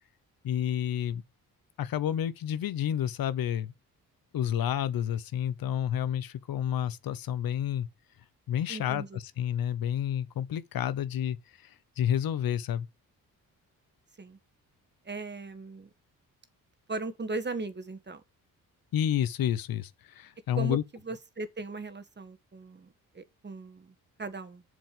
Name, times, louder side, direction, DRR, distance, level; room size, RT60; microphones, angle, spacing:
voice 1, 0.4-1.2 1.8-3.7 4.3-7.9 8.5-11.4 12.0-12.9 18.9-19.9 20.1-20.8, left 10 dB, 70° left, 1.0 m, -30 dB
voice 2, 8.7-9.2 14.2-14.4 15.0-15.9 16.9-18.2 20.6-20.8 21.0-24.6, right 3 dB, 30° right, 1.7 m, -38 dB
7.3 x 5.2 x 6.9 m
supercardioid pair, 65°, 36 cm